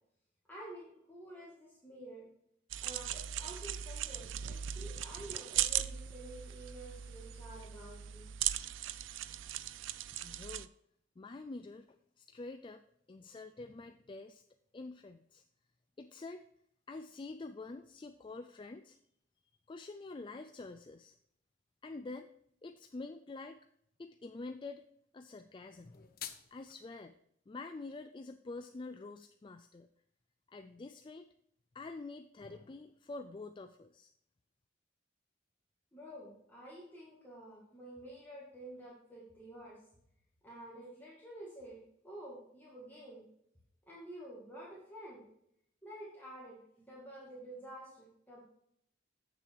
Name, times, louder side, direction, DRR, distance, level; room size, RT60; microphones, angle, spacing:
voice 1, 0.5-2.3 2.8-8.3 35.9-39.8 40.4-43.2 43.9-45.3 45.8-48.4, right 1 dB, 10° left, -6 dB, 2.0 m, -50 dB
sound 1, 2.7-10.7, right 11 dB, 80° right, 0.4 m, -38 dB
voice 2, 10.2-10.7 11.2-11.9 12.2-12.8 13.1-14.4 14.7-15.4 16.0-16.4 16.9-19.0 19.7-21.2 21.8-22.3 22.6-23.6 24.0-24.9 25.1-26.1 26.5-27.2 27.5-29.9 30.5-31.3 31.7-34.1, left 3 dB, 25° left, 7 dB, 0.4 m, -47 dB
sound 2, 25.7-26.7, left 10 dB, 50° left, 0.8 m, -47 dB
7.7 x 6.8 x 4.6 m, 0.73 s
head